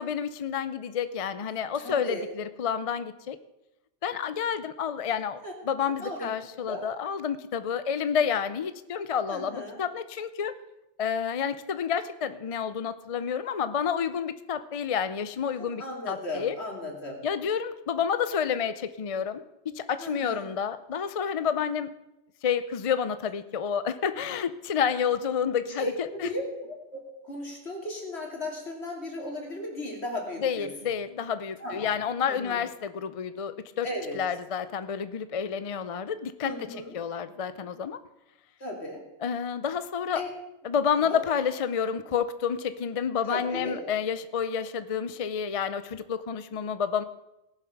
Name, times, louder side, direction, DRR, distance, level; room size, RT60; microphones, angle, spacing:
voice 1, 0.0-3.4 4.0-10.5 11.0-16.5 17.2-21.9 22.4-26.3 30.4-33.9 34.1-36.5 36.9-38.0 39.2-40.2 40.6-47.0, left 7 dB, 45° left, 12 dB, 0.5 m, -29 dB
voice 2, 1.8-2.2 5.4-5.5 5.8-6.3 6.6-6.9 9.3-9.8 15.8-17.2 20.0-20.5 25.8-30.7 31.6-31.9 32.3-32.6 33.8-34.2 36.4-36.9 38.6-39.0 40.1-40.3 41.0-41.2 43.3-43.8, left 1 dB, 70° left, 0 dB, 2.9 m, -36 dB
17.5 x 7.4 x 5.8 m, 0.92 s
omnidirectional pair, 1.2 m